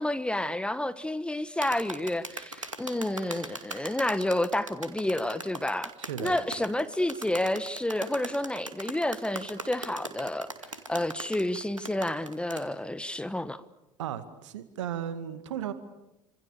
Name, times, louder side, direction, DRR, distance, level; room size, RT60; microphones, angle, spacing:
voice 1, 0.0-5.9 6.2-10.5 10.9-13.6, left 1 dB, 5° left, 1.3 m, -30 dB
sound 1, 1.6-12.7, right 2 dB, 90° right, 2.3 m, -39 dB
voice 2, 6.0-6.4 14.0-15.7, right 10 dB, 70° right, 2.2 m, -35 dB
29.5 x 26.5 x 7.0 m
figure-of-eight pair, 70°, 16 cm